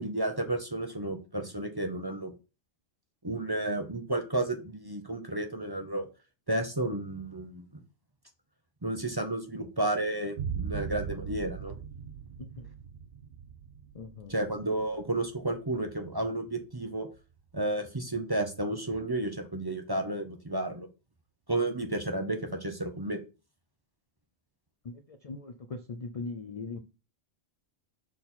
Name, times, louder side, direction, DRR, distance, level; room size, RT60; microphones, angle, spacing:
voice 1, 0.0-2.3 3.2-6.1 6.5-7.6 8.8-11.7 14.3-17.1 17.5-20.9 21.5-23.2, right 2 dB, 20° right, 0.7 m, -32 dB
sound 1, 10.4-17.8, right 8 dB, 55° right, 0.8 m, -40 dB
voice 2, 13.9-14.3 24.8-24.9 25.2-26.8, left 3 dB, 50° left, 0.4 m, -39 dB
6.3 x 4.2 x 4.2 m
omnidirectional pair, 1.3 m